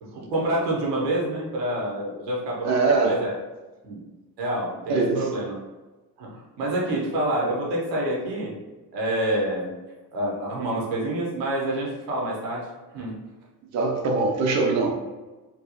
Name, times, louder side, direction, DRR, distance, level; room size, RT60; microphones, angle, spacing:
voice 1, 0.0-3.4 3.8-4.0 4.4-5.6 6.2-8.5 8.9-9.7 10.1-13.2, right 1 dB, 75° right, -3 dB, 0.8 m, -27 dB
voice 2, 2.6-3.2 4.9-5.3 13.7-15.0, right 3 dB, 35° right, 2 dB, 0.6 m, -22 dB
2.9 x 2.6 x 2.6 m, 1.2 s
figure-of-eight pair, 45°, 49 cm